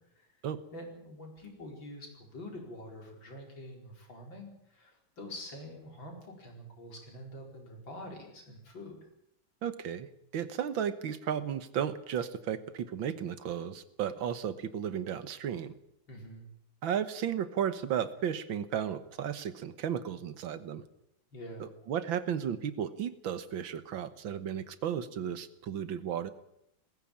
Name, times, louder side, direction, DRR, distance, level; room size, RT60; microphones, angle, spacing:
voice 1, 0.7-9.0 16.1-16.5 21.3-21.7, left 1 dB, 70° left, 1 dB, 5.6 m, -46 dB
voice 2, 9.6-10.1 10.3-15.7 16.8-20.8 21.6-26.3, right 9 dB, 75° right, 13 dB, 1.9 m, -34 dB
19.5 x 16.0 x 8.7 m, 0.78 s
omnidirectional pair, 2.2 m